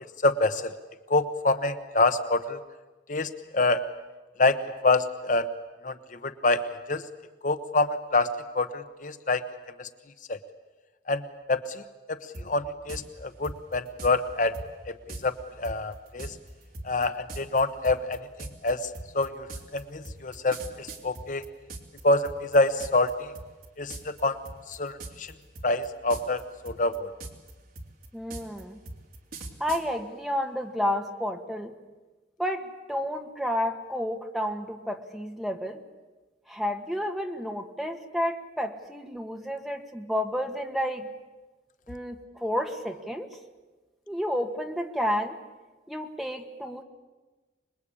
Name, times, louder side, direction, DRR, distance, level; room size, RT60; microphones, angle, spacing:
voice 1, 0.2-0.7 1.1-2.6 3.1-3.8 4.4-5.5 5.8-7.0 7.4-9.4 9.8-9.9 10.3-10.4 11.1-11.8 12.1-12.2 12.4-14.5 14.9-15.0 15.2-16.3 16.8-18.3 18.6-19.5 19.7-21.4 22.0-23.3 23.8-24.4 24.7-25.3 25.6-27.1, left 2 dB, 45° left, 10 dB, 0.9 m, -26 dB
sound 1, 12.3-12.5 12.9-13.0 13.4-14.1 14.5-14.7 15.1-15.2 15.6-22.0 22.3-23.1 23.4-23.7 23.9-24.2 24.5-25.3 25.6-26.4 26.7-29.8, right 2 dB, 50° right, 3.0 m, -40 dB
voice 2, 28.1-28.8 29.6-31.7 32.4-35.8 36.5-41.1 41.9-43.3 44.1-45.4 45.9-46.8, equal, ahead, 3 dB, 1.5 m, -31 dB
25.5 x 21.0 x 8.6 m, 1.2 s
head